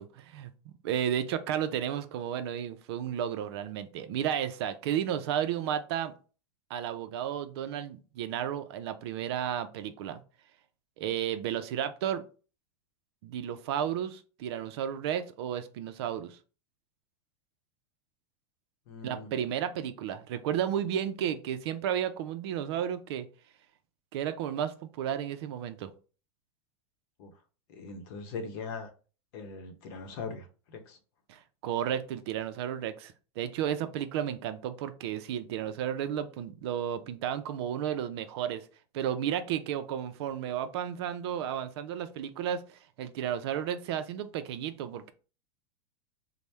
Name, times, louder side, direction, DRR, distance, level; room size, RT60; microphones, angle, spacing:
voice 1, 0.0-6.1 6.7-10.2 11.0-12.2 13.2-16.4 19.0-23.3 24.1-25.9 31.3-38.7 38.9-42.6 43.0-45.1, right 9 dB, 55° right, 0.4 m, -33 dB
voice 2, 18.9-19.3 27.2-27.3 27.7-28.9 29.3-31.0, left 4 dB, 50° left, 0.8 m, -40 dB
4.2 x 2.1 x 3.3 m
supercardioid pair, 155°, 16 cm